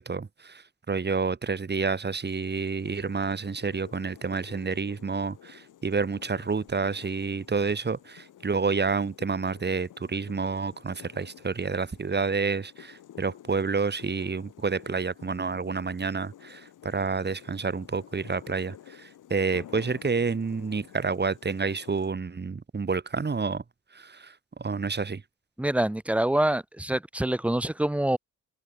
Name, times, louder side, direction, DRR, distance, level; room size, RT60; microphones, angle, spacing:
voice 1, 0.0-23.6 23.9-25.2, right 4 dB, 35° right, 3.9 m, -29 dB
sound 1, 2.2-22.1, left 11 dB, 90° left, 4.0 m, -50 dB
voice 2, 25.6-28.2, right 1 dB, 5° right, 0.6 m, -25 dB
cardioid pair, 105°, 30 cm